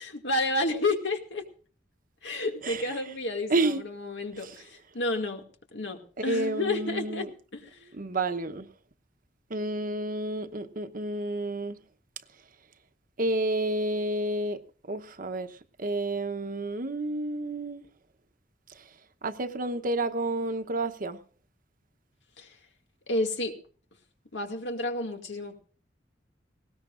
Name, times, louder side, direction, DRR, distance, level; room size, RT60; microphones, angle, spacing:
voice 1, 0.0-1.5 2.2-5.4 5.7-7.9 22.4-22.6 23.1-23.6 24.3-25.6, left 2 dB, 80° left, 2.3 m, -31 dB
voice 2, 3.5-3.8 4.4-4.6 6.3-7.3 7.9-8.7 9.5-11.8 13.2-14.6 14.9-17.8 18.7-18.8 19.2-21.2, right 2 dB, 50° right, 1.0 m, -30 dB
19.5 x 17.5 x 2.5 m
head